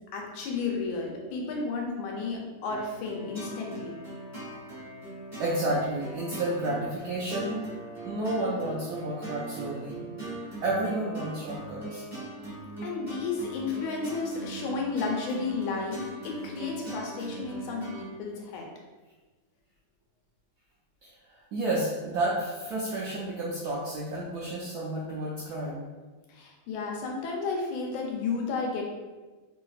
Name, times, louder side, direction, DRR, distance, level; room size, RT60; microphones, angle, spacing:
voice 1, 0.0-4.0 12.8-18.7 26.3-28.8, left 4 dB, 90° left, 0 dB, 1.4 m, -32 dB
sound 1, 2.7-18.1, right 2 dB, 10° right, 1.0 m, -40 dB
voice 2, 5.4-7.7 8.0-10.0 10.6-12.0 21.0-25.9, right 1 dB, 85° right, -5 dB, 0.8 m, -31 dB
3.1 x 2.7 x 2.3 m, 1.3 s
omnidirectional pair, 2.2 m